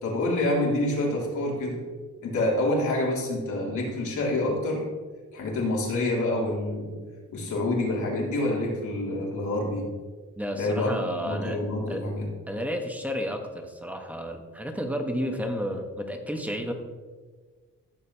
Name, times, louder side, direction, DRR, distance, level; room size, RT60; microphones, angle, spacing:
voice 1, 0.0-1.8 2.2-4.8 5.3-7.0 7.3-9.8 10.6-12.3, left 1 dB, 75° left, -4 dB, 3.2 m, -27 dB
voice 2, 10.4-11.6 11.9-12.1 12.5-16.7, equal, 5° right, 4 dB, 1.1 m, -31 dB
14.5 x 7.4 x 2.8 m, 1.5 s
cardioid pair, 115°, 30 cm